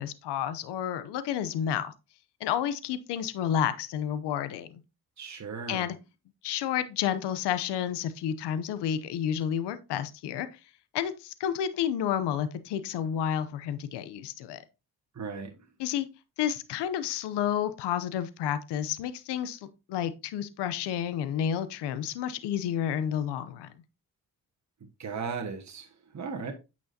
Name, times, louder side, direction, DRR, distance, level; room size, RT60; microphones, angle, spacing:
voice 1, 0.0-1.9 2.4-4.8 5.7-5.9 6.4-10.5 10.9-14.6 15.8-16.1 16.4-19.6 19.9-23.7, left 9 dB, 90° left, 0.7 m, -30 dB
voice 2, 5.2-5.9 15.1-15.5 25.0-26.5, right 5 dB, 45° right, 1.5 m, -36 dB
8.8 x 6.1 x 2.7 m
supercardioid pair, 50°, 40 cm